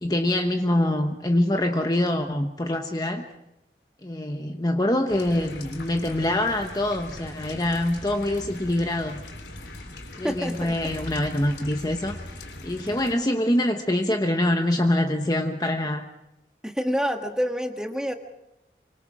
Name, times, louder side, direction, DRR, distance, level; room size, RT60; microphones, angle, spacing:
voice 1, 0.0-3.3 4.0-9.2 10.2-12.4 12.6-16.1, left 1 dB, 20° left, 4 dB, 1.1 m, -25 dB
sound 1, 5.1-13.1, left 1 dB, 75° left, 3.2 m, -40 dB
voice 2, 10.2-10.8 16.6-18.1, equal, 5° right, 4 dB, 1.5 m, -27 dB
25.5 x 24.5 x 4.9 m, 0.91 s
head